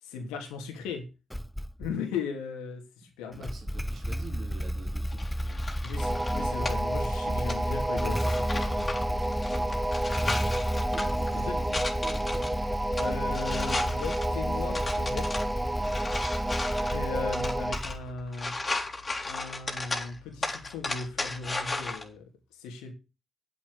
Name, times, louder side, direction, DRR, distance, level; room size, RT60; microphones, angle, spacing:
voice 1, 0.0-1.1 1.8-3.5 5.8-9.0 11.5-11.6 12.9-15.3 16.8-18.5 19.2-22.2 22.6-22.9, left 5 dB, 85° left, 4 dB, 2.8 m, -37 dB
Motorcycle / Engine starting, 1.3-2.0 3.3-18.2, equal, 5° left, 0.5 m, -33 dB
voice 2, 3.3-5.7 9.0-9.9 10.9-12.6 15.5-16.2, right 4 dB, 55° right, 3 dB, 4.3 m, -47 dB
sound 1, 5.1-22.0, left 2 dB, 30° left, 3.7 m, -36 dB
sound 2, 6.0-17.8, right 1 dB, 10° right, 1.3 m, -31 dB
8.6 x 8.5 x 6.5 m, 0.29 s
hypercardioid pair, 50°, 0 cm